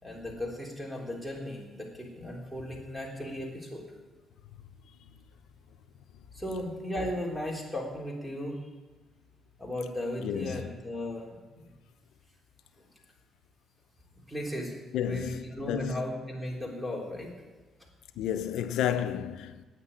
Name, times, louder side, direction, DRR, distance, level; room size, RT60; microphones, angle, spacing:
voice 1, 0.0-3.9 6.3-8.6 9.6-11.6 14.3-14.7 15.0-17.3, left 1 dB, 5° right, 3.7 m, -36 dB
voice 2, 10.2-10.7 14.9-16.0 18.2-19.6, left 10 dB, 85° left, 0.7 m, -31 dB
9.6 x 9.2 x 8.9 m
cardioid pair, 90°, 0 cm